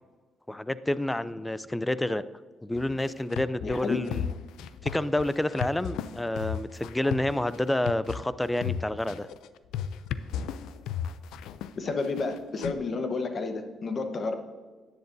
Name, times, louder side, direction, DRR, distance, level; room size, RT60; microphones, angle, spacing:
voice 1, 0.5-2.2 2.6-4.2 4.8-9.3, left 1 dB, 10° left, 16 dB, 0.4 m, -29 dB
sound 1, 2.7-12.7, left 9 dB, 90° left, 0.4 m, -35 dB
voice 2, 3.6-4.0 11.7-14.3, left 3 dB, 45° left, 6 dB, 1.1 m, -31 dB
10.5 x 10.0 x 2.7 m, 1.4 s
cardioid pair, 90°, 0 cm